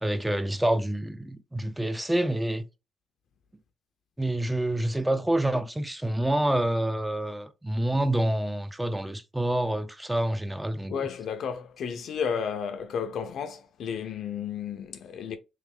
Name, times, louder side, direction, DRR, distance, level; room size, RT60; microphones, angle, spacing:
voice 1, 0.0-2.6 4.2-11.1, right 1 dB, 10° right, 0.6 m, -27 dB
voice 2, 10.9-15.4, left 7 dB, 70° left, 0.6 m, -32 dB
3.2 x 3.1 x 3.5 m
cardioid pair, 90°, 0 cm